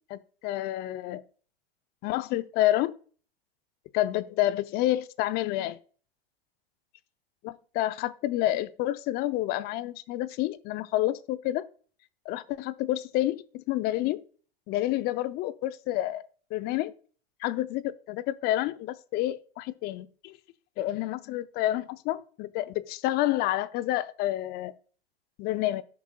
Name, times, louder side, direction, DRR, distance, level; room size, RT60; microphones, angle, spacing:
voice 1, 0.1-1.2 2.0-2.9 3.9-5.8 7.4-11.6 12.3-14.2 14.7-16.2 16.5-16.9 17.4-20.4 20.8-24.7 25.4-25.8, left 15 dB, 30° left, 0.5 m, -29 dB
11.5 x 6.0 x 2.3 m
hypercardioid pair, 105°, 31 cm